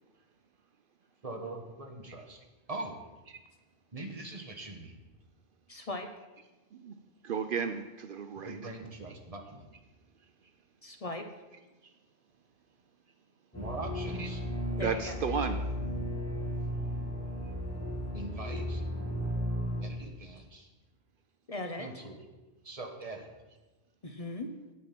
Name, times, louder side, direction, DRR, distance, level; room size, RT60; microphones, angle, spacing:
voice 1, 1.2-2.4 2.7-3.0 3.9-5.0 8.3-9.6 13.5-14.4 18.1-18.8 19.8-20.7 21.8-22.2 22.6-23.3, right 2 dB, 35° right, 3 dB, 1.4 m, -42 dB
voice 2, 5.7-6.1 10.8-11.3 14.8-15.2 21.5-22.1 24.0-24.5, left 2 dB, 40° left, 5 dB, 0.8 m, -38 dB
voice 3, 7.2-8.7 14.2-14.3 14.8-15.6, right 6 dB, 65° right, 9 dB, 0.7 m, -34 dB
sound 1, 13.5-19.8, equal, 15° left, 4.0 m, -34 dB
8.8 x 8.5 x 5.9 m, 1.1 s
omnidirectional pair, 1.0 m